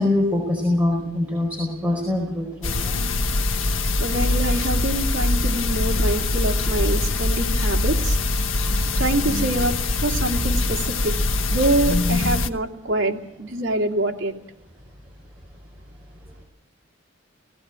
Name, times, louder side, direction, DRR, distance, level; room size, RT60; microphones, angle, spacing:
voice 1, 0.0-3.0, left 2 dB, 10° right, -3 dB, 4.8 m, -23 dB
sound 1, 2.6-12.5, left 2 dB, 75° left, 1.1 m, -23 dB
voice 2, 4.0-8.2 8.9-9.8 10.0-11.2 11.5-14.3, right 1 dB, 70° right, 1 dB, 2.5 m, -25 dB
18.5 x 16.5 x 9.0 m, 0.84 s
head